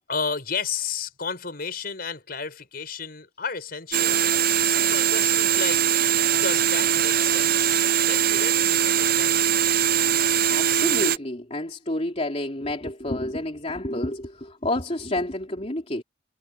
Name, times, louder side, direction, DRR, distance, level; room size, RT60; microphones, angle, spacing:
voice 1, 0.1-4.3 4.6-5.8 6.3-9.8, left 5 dB, 55° left, 5.9 m, -33 dB
sound 1, 3.9-11.2, right 9 dB, 50° right, 0.7 m, -21 dB
voice 2, 10.5-16.0, left 1 dB, 35° left, 3.4 m, -29 dB
head